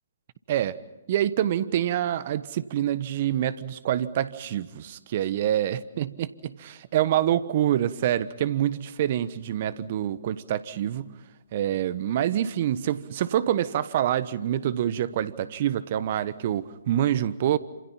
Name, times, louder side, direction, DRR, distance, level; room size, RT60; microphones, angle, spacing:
voice 1, 1.1-11.1 11.5-17.6, right 11 dB, 45° right, 16 dB, 1.2 m, -26 dB
28.5 x 27.0 x 5.7 m, 1.0 s
figure-of-eight pair, 130°, 0 cm